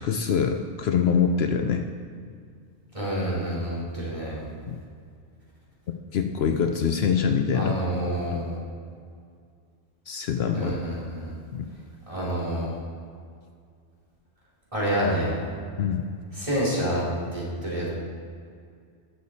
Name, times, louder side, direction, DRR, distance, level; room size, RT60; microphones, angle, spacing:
voice 1, 0.0-1.9 4.7-4.8 6.1-7.7 8.3-8.4 10.1-10.7 11.5-11.7 15.8-16.0, left 6 dB, 65° left, 5 dB, 0.8 m, -24 dB
voice 2, 2.9-4.5 7.5-8.6 10.5-11.3 12.1-12.7 14.7-15.4 16.3-17.0 17.3-17.9, right 1 dB, 30° right, -7 dB, 2.9 m, -28 dB
12.5 x 6.7 x 4.1 m, 2.2 s
omnidirectional pair, 1.2 m